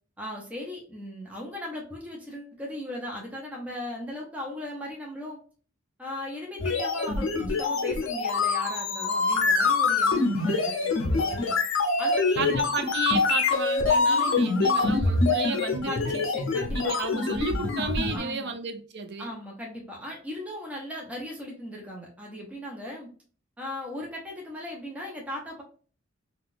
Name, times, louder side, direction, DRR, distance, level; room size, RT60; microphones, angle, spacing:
voice 1, 0.2-5.4 6.0-11.6 12.0-12.7 14.0-14.5 15.8-16.9 18.1-18.5 19.2-23.1 23.6-25.6, left 1 dB, 5° right, 0.7 m, -38 dB
sound 1, 6.6-18.2, left 3 dB, 60° left, 0.6 m, -25 dB
voice 2, 12.4-16.2 16.7-19.3, right 4 dB, 55° right, 0.5 m, -33 dB
3.6 x 2.4 x 2.5 m
head